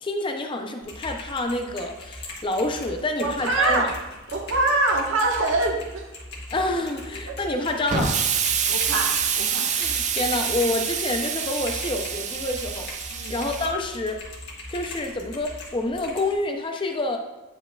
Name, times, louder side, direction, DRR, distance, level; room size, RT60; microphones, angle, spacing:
voice 1, 0.0-3.9 6.5-8.2 9.7-12.9 13.3-14.2 14.7-17.2, left 2 dB, 25° left, 4 dB, 0.5 m, -28 dB
Typing, 0.8-16.3, left 1 dB, 55° left, 1.5 m, -40 dB
voice 2, 3.2-3.9 4.3-6.1 7.2-7.3 8.7-9.7 13.1-13.4, right 2 dB, 75° right, 0 dB, 1.2 m, -24 dB
Explosion, 7.9-13.7, right 7 dB, 35° right, 0.4 m, -26 dB
9.4 x 4.7 x 2.3 m, 1.1 s
head